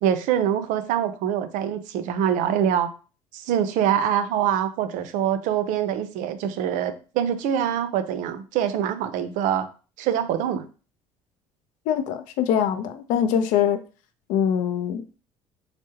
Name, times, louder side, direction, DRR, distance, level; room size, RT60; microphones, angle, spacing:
voice 1, 0.0-2.9 3.3-9.7 10.0-10.7, right 9 dB, 70° right, 10 dB, 0.4 m, -24 dB
voice 2, 11.9-13.8 14.3-15.0, left 8 dB, 70° left, 9 dB, 0.4 m, -23 dB
3.5 x 2.0 x 2.8 m, 0.36 s
supercardioid pair, 70°, 14 cm